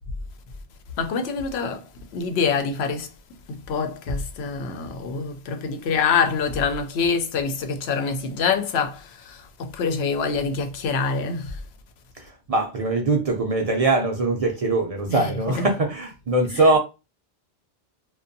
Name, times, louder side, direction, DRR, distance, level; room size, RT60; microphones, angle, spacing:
voice 1, 1.0-3.1 3.5-11.6 15.1-15.7 16.5-16.6, left 5 dB, 90° left, 0.8 m, -26 dB
voice 2, 12.2-16.8, right 2 dB, 50° right, 0.5 m, -22 dB
2.5 x 2.2 x 2.5 m
omnidirectional pair, 1.0 m